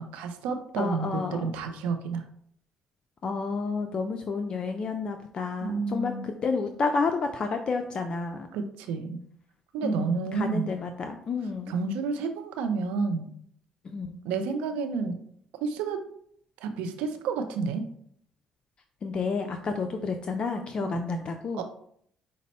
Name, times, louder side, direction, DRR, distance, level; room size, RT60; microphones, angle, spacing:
voice 1, 0.0-2.2 5.6-6.3 8.5-9.2 9.7-10.7 11.7-13.3 14.2-15.2 15.6-16.0 16.6-17.9 20.8-21.0 21.5-21.6, right 4 dB, 90° right, 7 dB, 0.5 m, -30 dB
voice 2, 0.8-1.5 3.2-8.5 9.8-11.8 13.8-14.2 19.0-21.6, left 4 dB, 45° left, 6 dB, 0.4 m, -30 dB
5.1 x 2.0 x 4.1 m, 0.65 s
cardioid pair, 85°, 2 cm